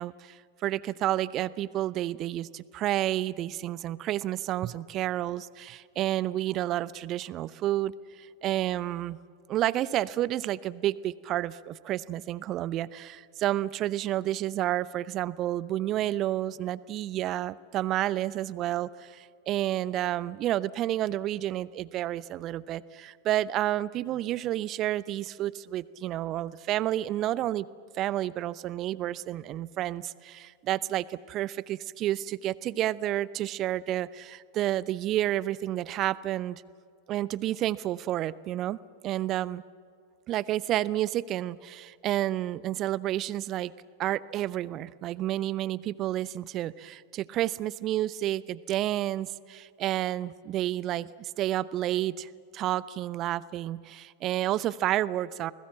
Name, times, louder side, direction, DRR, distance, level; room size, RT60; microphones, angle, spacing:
voice 1, 0.0-9.2 9.5-27.7 28.0-36.6 37.1-38.8 39.0-39.6 40.3-43.7 44.0-55.5, right 13 dB, 35° right, 20 dB, 0.7 m, -30 dB
29.0 x 20.5 x 7.5 m, 2.3 s
figure-of-eight pair, 90°, 0 cm